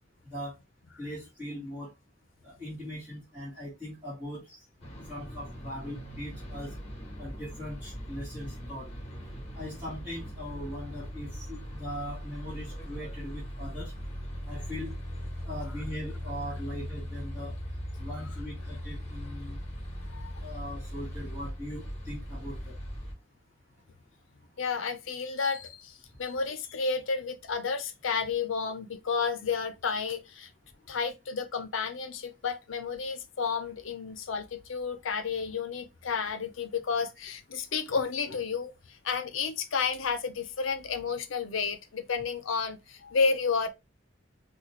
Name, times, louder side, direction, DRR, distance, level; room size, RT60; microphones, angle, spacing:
voice 1, 1.0-1.9 2.4-4.6 5.1-6.7 7.2-8.9 9.5-13.9 14.4-14.9 15.4-17.6 18.0-19.6 20.4-22.8, equal, 10° right, 1.4 m, -40 dB
sound 1, 4.8-23.1, equal, 30° left, 1.2 m, -39 dB
voice 2, 24.6-30.5 30.9-43.7, left 5 dB, 85° left, 0.6 m, -31 dB
4.0 x 2.3 x 3.0 m
head